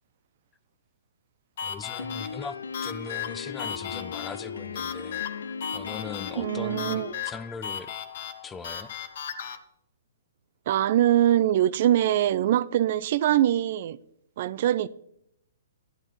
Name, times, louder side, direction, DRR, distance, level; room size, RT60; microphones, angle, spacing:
sound 1, 1.6-9.6, left 8 dB, 60° left, 0.9 m, -36 dB
voice 1, 1.6-5.2 5.7-7.9 8.4-8.9, left 5 dB, 15° left, 0.5 m, -40 dB
Piano, 2.0-7.1, left 5 dB, 75° left, 0.4 m, -37 dB
voice 2, 6.4-7.2 10.7-14.0 14.4-14.9, right 12 dB, 50° right, 0.3 m, -23 dB
11.5 x 10.5 x 3.1 m
figure-of-eight pair, 125°, 0 cm